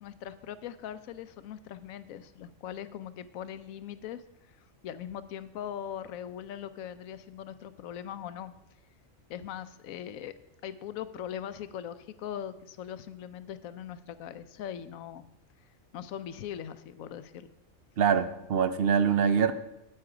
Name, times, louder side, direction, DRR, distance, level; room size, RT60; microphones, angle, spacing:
voice 1, 0.0-4.2 4.8-8.5 9.3-10.3 10.6-15.2 15.9-17.5, left 9 dB, 85° left, 14 dB, 1.0 m, -40 dB
voice 2, 18.0-19.5, right 7 dB, 55° right, 10 dB, 0.7 m, -24 dB
8.9 x 8.7 x 4.8 m, 0.87 s
omnidirectional pair, 1.4 m